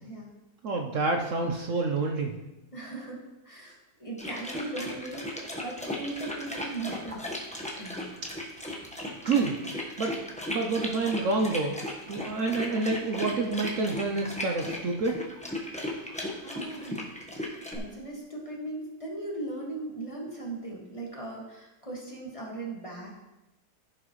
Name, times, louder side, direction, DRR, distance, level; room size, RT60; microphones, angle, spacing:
voice 1, 0.6-2.4 8.2-8.3 9.2-9.6 10.0-10.1 10.5-11.8 12.1-15.2, right 3 dB, 60° right, 2 dB, 1.1 m, -28 dB
voice 2, 2.7-7.4 7.7-8.1 15.8-17.2 17.7-23.1, right 2 dB, 20° left, -3 dB, 2.0 m, -39 dB
sound 1, 4.2-17.8, left 1 dB, 5° left, 1.1 m, -36 dB
15.0 x 5.8 x 3.2 m, 0.98 s
omnidirectional pair, 1.6 m